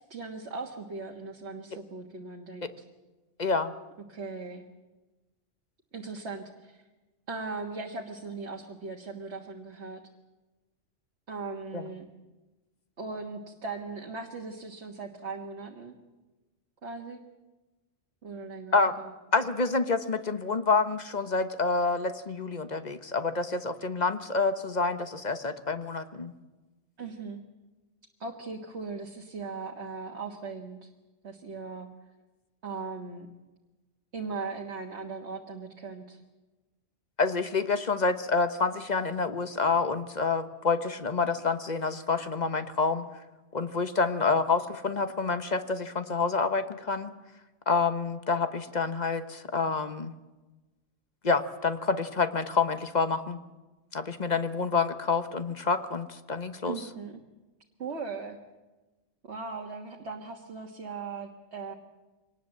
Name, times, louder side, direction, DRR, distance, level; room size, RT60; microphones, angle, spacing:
voice 1, 0.0-2.8 4.1-4.6 5.9-6.8 7.3-10.0 11.3-12.1 13.0-15.9 16.8-17.2 18.2-19.1 27.0-27.4 28.2-30.9 31.2-31.9 32.6-33.3 34.1-36.2 56.7-57.2 57.8-58.4 59.2-61.7, right 4 dB, 60° right, 1 dB, 1.9 m, -39 dB
voice 2, 3.4-3.7 11.7-11.8 18.7-18.9 19.3-26.3 37.2-43.0 43.5-47.1 47.7-50.1 51.2-53.4 53.9-56.7, left 4 dB, 35° left, 10 dB, 1.1 m, -28 dB
24.5 x 19.0 x 7.8 m, 1.1 s
omnidirectional pair, 1.3 m